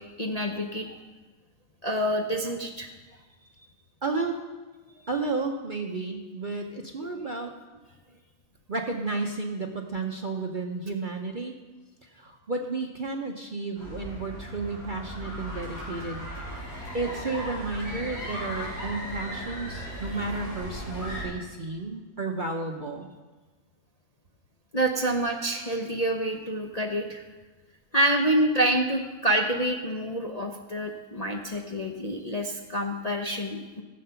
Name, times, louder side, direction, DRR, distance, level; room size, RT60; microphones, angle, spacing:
voice 1, 0.2-0.9 1.8-2.9 24.7-27.2 27.9-33.8, right 1 dB, 35° left, 1 dB, 0.6 m, -27 dB
voice 2, 4.0-4.4 5.1-7.5 8.7-11.6 12.1-16.2 16.9-23.1, right 3 dB, 45° right, 2 dB, 0.7 m, -32 dB
sound 1, 13.8-21.2, equal, 90° left, 4.6 m, -37 dB
15.5 x 7.6 x 5.7 m, 1.3 s
omnidirectional pair, 1.7 m